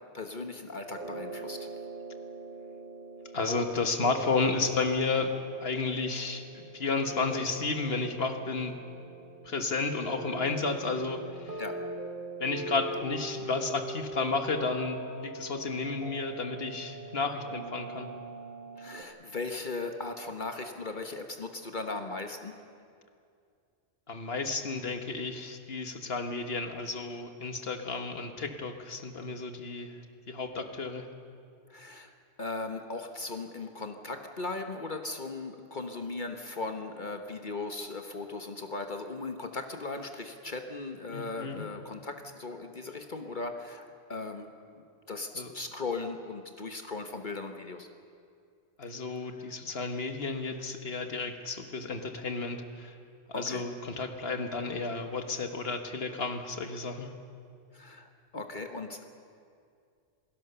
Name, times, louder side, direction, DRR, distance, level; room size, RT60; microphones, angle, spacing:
voice 1, 0.1-1.7 11.6-11.8 18.8-22.5 31.7-32.1 32.4-44.5 44.8-47.9 49.4-49.5 53.3-53.6 57.7-59.0, left 3 dB, 45° left, 5 dB, 1.3 m, -38 dB
sound 1, 0.8-19.0, right 2 dB, 50° right, 1.7 m, -42 dB
voice 2, 3.3-5.3 5.6-8.7 9.4-11.6 12.4-18.1 24.1-30.0 30.3-31.1 41.1-41.6 45.3-45.5 48.8-53.0 53.4-57.1, left 4 dB, 60° left, 6 dB, 1.6 m, -32 dB
27.5 x 16.5 x 6.9 m, 2.4 s
omnidirectional pair, 1.1 m